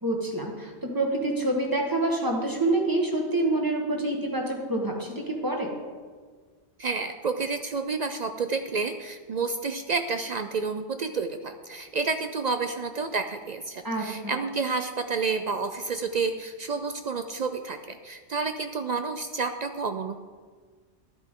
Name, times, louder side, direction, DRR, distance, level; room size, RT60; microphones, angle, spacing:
voice 1, 0.0-5.7 13.8-14.3, right 2 dB, 20° right, 0 dB, 1.5 m, -27 dB
voice 2, 6.8-20.2, right 4 dB, 55° right, 8 dB, 0.4 m, -30 dB
12.5 x 8.9 x 3.7 m, 1.5 s
omnidirectional pair, 1.1 m